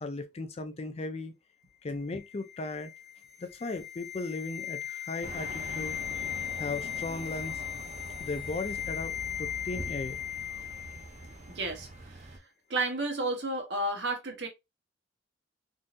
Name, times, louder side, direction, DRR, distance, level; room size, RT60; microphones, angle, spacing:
voice 1, 0.0-1.3 1.8-2.9 3.4-6.0 6.6-7.6 8.2-10.2, left 3 dB, 35° left, 0.4 m, -37 dB
sound 1, 2.1-11.4 11.6-11.8, left 11 dB, 50° left, 1.3 m, -38 dB
sound 2, 5.2-12.4, right 2 dB, 35° right, 0.6 m, -44 dB
voice 2, 11.5-12.3 12.7-14.5, right 2 dB, 65° right, 1.1 m, -32 dB
3.7 x 2.6 x 2.5 m
head